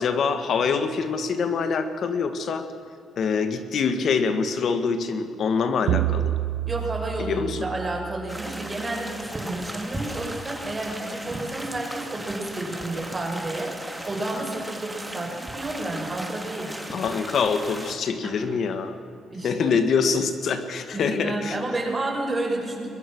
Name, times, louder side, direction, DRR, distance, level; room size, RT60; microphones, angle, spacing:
voice 1, 0.0-2.7 3.2-6.3 7.2-7.7 16.9-19.0 19.4-21.6, left 5 dB, 60° left, 8 dB, 2.1 m, -25 dB
sound 1, 5.9-8.6, right 13 dB, 85° right, 0.6 m, -28 dB
voice 2, 6.7-16.8 18.2-18.4 19.3-19.8 20.9-22.9, right 2 dB, 25° right, 1 dB, 6.2 m, -31 dB
sound 2, 8.3-18.0, right 1 dB, 5° right, 2.8 m, -36 dB
22.0 x 21.5 x 6.4 m, 2.6 s
cardioid pair, 90°, 0 cm